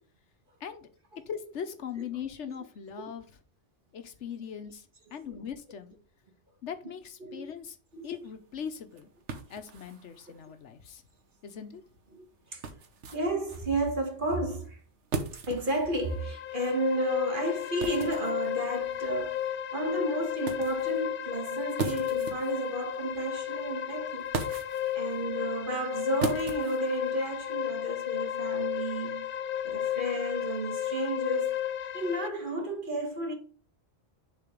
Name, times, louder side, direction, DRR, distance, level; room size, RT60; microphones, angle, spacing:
voice 1, 1.3-3.4 3.9-5.9 6.6-7.8 8.0-9.1 9.5-11.0 11.4-11.8, left 7 dB, 80° left, 1.2 m, -40 dB
voice 2, 7.2-7.5 7.9-8.1 12.2-12.3 12.5-12.6 13.1-14.8 15.3-24.3 24.9-29.4 29.6-31.6 31.9-33.3, right 1 dB, 45° right, 1.8 m, -32 dB
sound 1, 7.9-27.5, right 4 dB, 80° right, 1.3 m, -41 dB
sound 2, 16.0-32.3, left 11 dB, 60° left, 0.7 m, -33 dB
6.8 x 4.1 x 5.1 m
omnidirectional pair, 1.2 m